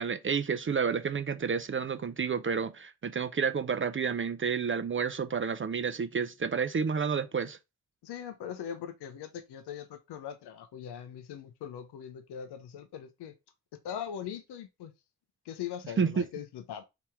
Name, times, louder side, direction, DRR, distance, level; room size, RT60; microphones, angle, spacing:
voice 1, 0.0-7.6 16.0-16.2, right 6 dB, 30° right, 0.5 m, -30 dB
voice 2, 8.0-13.3 13.8-14.9 15.4-16.8, left 9 dB, 75° left, 0.6 m, -41 dB
3.4 x 2.9 x 4.4 m
supercardioid pair, 50°, 40 cm